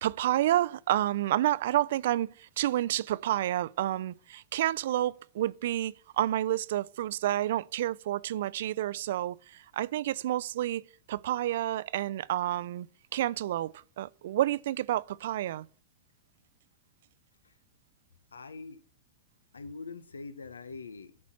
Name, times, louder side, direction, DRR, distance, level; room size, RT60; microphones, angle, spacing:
voice 1, 0.0-12.9 13.1-15.7, right 13 dB, 65° right, 0.3 m, -29 dB
voice 2, 18.3-18.8 19.5-21.2, left 4 dB, 90° left, 0.6 m, -43 dB
11.0 x 4.2 x 7.3 m
hypercardioid pair, 105°, 0 cm